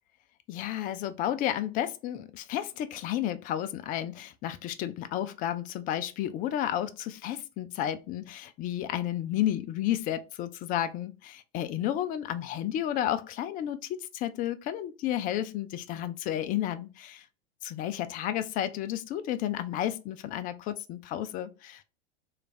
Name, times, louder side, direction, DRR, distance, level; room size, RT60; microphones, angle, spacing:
voice 1, 0.5-17.3 17.7-21.8, left 11 dB, 25° left, 0.3 m, -32 dB
3.2 x 2.3 x 2.5 m
hypercardioid pair, 90°, 33 cm